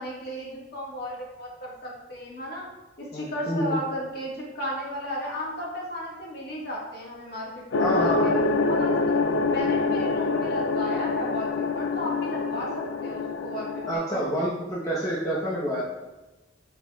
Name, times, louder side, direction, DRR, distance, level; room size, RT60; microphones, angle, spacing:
voice 1, 0.0-2.7 3.0-9.2 9.5-14.2, equal, 55° left, -4 dB, 1.8 m, -35 dB
voice 2, 3.1-3.7 7.8-8.4 13.9-15.8, equal, 20° left, -8 dB, 1.0 m, -28 dB
sound 1, 7.7-13.9, left 3 dB, 85° left, 0.4 m, -25 dB
8.7 x 4.8 x 2.4 m, 1.1 s
head